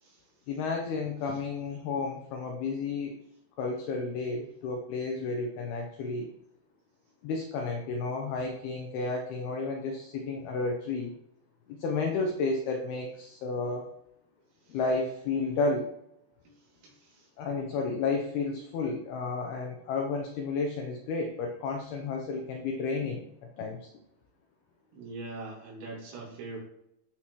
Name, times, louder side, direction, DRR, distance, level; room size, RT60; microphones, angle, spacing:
voice 1, 0.5-3.1 3.6-6.3 7.2-11.1 11.7-13.9 14.7-15.9 17.4-23.9, left 4 dB, 85° left, 2 dB, 2.2 m, -32 dB
voice 2, 16.8-17.3 24.9-26.6, right 3 dB, 90° right, -3 dB, 5.4 m, -42 dB
14.5 x 5.8 x 3.2 m, 0.81 s
omnidirectional pair, 5.8 m